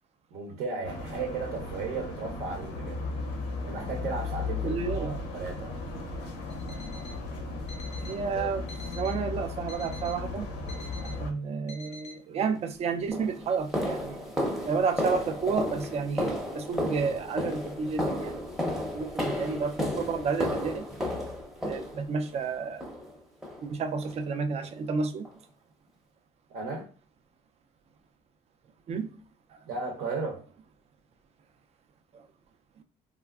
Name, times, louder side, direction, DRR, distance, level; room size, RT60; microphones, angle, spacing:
voice 1, 0.3-3.0 3.6-5.7 26.5-26.9 29.7-30.4, right 4 dB, 70° right, 0.7 m, -35 dB
sound 1, 0.8-11.3, left 3 dB, 85° left, 0.7 m, -36 dB
voice 2, 4.6-5.1 8.0-8.6 9.0-10.5 11.0-14.4 14.6-18.6 18.9-20.9 21.6-22.9 23.6-25.3 28.9-29.1 29.5-29.6 32.1-32.2, right 5 dB, 40° right, 0.4 m, -31 dB
Alarm, 6.5-7.2 7.7-8.2 8.7-9.2 9.7-10.2 10.7-11.2 11.7-12.2, left 1 dB, 40° left, 0.5 m, -47 dB
sound 2, 12.4-12.6 13.1-22.3 22.8-23.2 23.4-23.6 24.0-24.2 24.6-24.7 25.2-25.3, left 1 dB, ahead, 0.7 m, -33 dB
3.5 x 2.3 x 2.3 m
cardioid pair, 110°, 17 cm